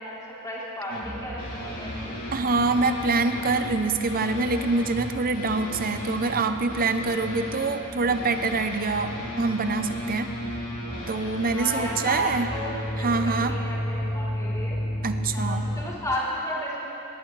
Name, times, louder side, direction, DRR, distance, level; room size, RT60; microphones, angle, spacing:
voice 1, 0.0-1.9 11.5-14.8 15.3-16.9, equal, 15° left, -7 dB, 3.7 m, -33 dB
sound 1, 0.9-15.8, equal, 40° left, 3.7 m, -33 dB
sound 2, 1.0-16.1, equal, 5° right, 1.9 m, -41 dB
voice 2, 2.3-10.3 11.1-12.5 13.0-13.6 15.0-15.6, right 3 dB, 40° right, 8 dB, 0.7 m, -25 dB
21.0 x 19.5 x 3.4 m, 2.9 s
head